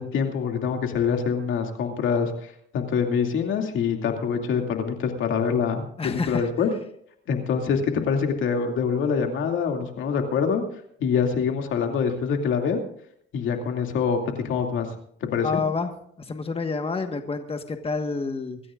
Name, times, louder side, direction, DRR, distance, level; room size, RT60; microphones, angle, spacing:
voice 1, 0.0-6.7 7.3-10.6 11.0-12.8 13.3-14.9 15.2-15.6, left 6 dB, 80° left, 4 dB, 2.6 m, -25 dB
voice 2, 6.0-6.5 15.4-15.9 16.2-18.6, left 4 dB, 30° left, 6 dB, 1.5 m, -28 dB
24.0 x 14.0 x 2.5 m, 0.68 s
cardioid pair, 90°, 20 cm